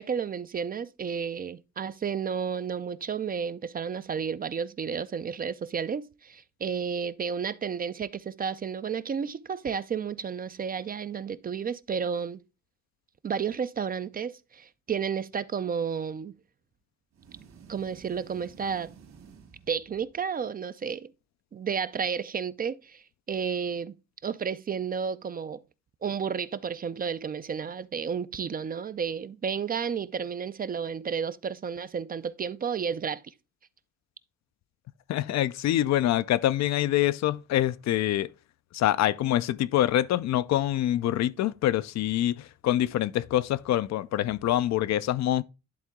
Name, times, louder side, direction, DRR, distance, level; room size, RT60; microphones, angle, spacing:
voice 1, 0.0-12.4 13.2-16.3 17.7-18.9 19.7-21.1 21.5-24.0 24.2-25.6 26.0-33.2, right 6 dB, 30° right, 0.4 m, -32 dB
sound 1, 17.1-20.3, right 6 dB, 65° right, 2.1 m, -52 dB
voice 2, 35.1-38.3 38.7-45.4, left 13 dB, 65° left, 0.4 m, -25 dB
11.0 x 3.8 x 3.5 m
cardioid pair, 90°, 30 cm